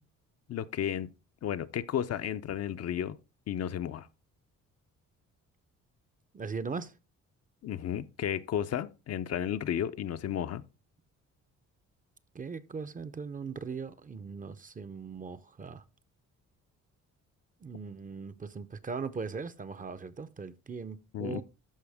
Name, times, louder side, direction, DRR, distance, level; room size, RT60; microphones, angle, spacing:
voice 1, 0.5-1.1 1.4-3.2 3.5-4.1 7.6-10.6 21.1-21.4, left 9 dB, 55° left, 0.6 m, -33 dB
voice 2, 6.3-6.9 12.3-15.8 17.6-21.4, right 5 dB, 25° right, 0.6 m, -39 dB
13.0 x 4.8 x 3.5 m
cardioid pair, 90°, 30 cm